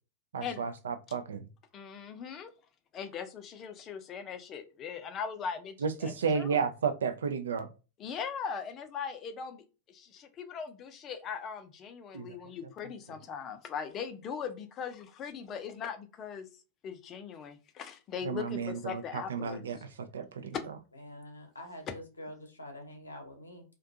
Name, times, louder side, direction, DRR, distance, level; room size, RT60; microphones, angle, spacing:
voice 1, 0.3-1.5 5.8-7.7 12.1-12.4 18.2-20.6, right 6 dB, 65° right, 0.3 m, -33 dB
voice 2, 1.7-2.5 2.9-6.7 8.0-9.6 9.9-16.5 16.8-19.8 20.5-20.6, left 7 dB, 30° left, 0.5 m, -40 dB
voice 3, 21.0-23.6, left 1 dB, 80° left, 0.7 m, -46 dB
2.5 x 2.2 x 2.5 m
figure-of-eight pair, 90°, 0 cm